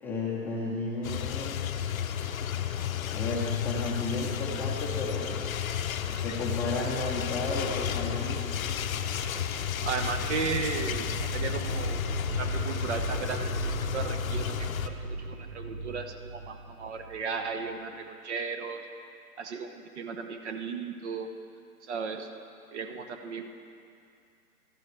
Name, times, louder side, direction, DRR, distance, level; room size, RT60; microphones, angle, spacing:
voice 1, 0.0-1.6 3.1-5.4 6.1-8.5, left 2 dB, 5° left, -6 dB, 0.7 m, -33 dB
sound 1, 1.0-14.9, left 9 dB, 60° left, 0.7 m, -32 dB
sound 2, 8.6-17.7, right 3 dB, 30° right, 0.4 m, -37 dB
voice 2, 9.8-12.1 12.4-18.9 19.4-21.3 21.8-22.3 22.7-23.5, right 5 dB, 45° right, 6 dB, 1.0 m, -35 dB
16.0 x 13.0 x 3.3 m, 2.4 s
hypercardioid pair, 140°, 46 cm